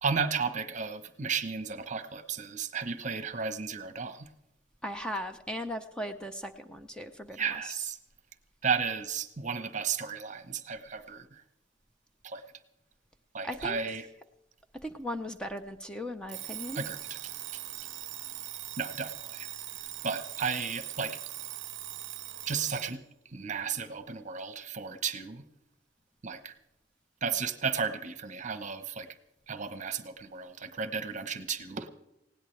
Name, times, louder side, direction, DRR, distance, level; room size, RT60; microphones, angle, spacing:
voice 1, 0.0-4.3 7.3-8.0 8.6-11.4 12.2-12.4 13.3-14.1 16.7-17.2 18.8-19.5 20.0-21.2 22.5-23.0 23.3-25.4 26.2-26.5 27.2-29.1 29.5-31.9, right 6 dB, 40° right, 11 dB, 1.0 m, -33 dB
voice 2, 4.8-7.8 13.4-13.8 14.8-16.8, equal, 5° left, 6 dB, 0.6 m, -38 dB
Alarm, 16.3-23.0, right 15 dB, 70° right, 0.6 m, -41 dB
19.5 x 17.0 x 3.3 m, 0.89 s
head